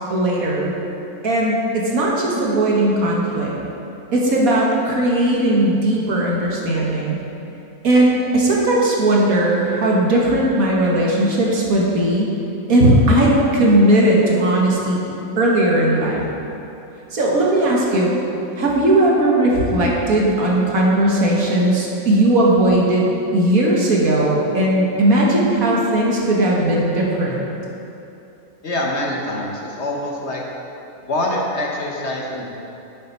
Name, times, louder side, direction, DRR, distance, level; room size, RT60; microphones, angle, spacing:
voice 1, 0.1-0.7 1.2-3.5 4.1-7.2 7.8-12.3 12.7-15.0 15.4-16.3 17.1-18.1 18.6-27.4, right 1 dB, 65° right, -3 dB, 1.8 m, -17 dB
voice 2, 28.6-30.4 31.0-32.5, left 1 dB, 50° left, -1 dB, 1.2 m, -25 dB
7.8 x 7.3 x 5.4 m, 2.9 s
omnidirectional pair, 1.6 m